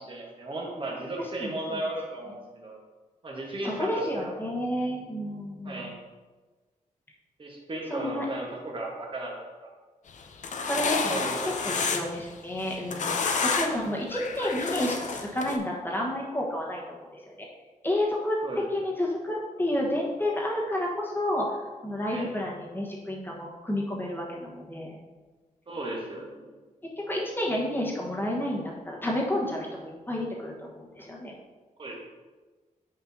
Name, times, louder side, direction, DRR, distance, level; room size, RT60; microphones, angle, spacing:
voice 1, 0.0-2.8 3.2-4.3 5.6-6.0 7.4-9.3 9.6-9.7 11.1-11.7 13.6-13.9 18.4-18.6 22.1-22.3 25.7-26.6 31.8-32.0, right 1 dB, 40° right, -2 dB, 1.4 m, -35 dB
voice 2, 1.2-1.8 3.6-5.9 7.9-8.3 10.7-11.2 11.4-17.5 17.8-18.4 18.7-25.0 27.1-31.3, left 1 dB, 15° left, -3 dB, 1.3 m, -30 dB
sound 1, 10.2-12.2 12.6-13.8 14.1-15.6, left 4 dB, 60° left, 0.6 m, -29 dB
8.5 x 5.4 x 2.8 m, 1.3 s
wide cardioid pair, 130°, 14 cm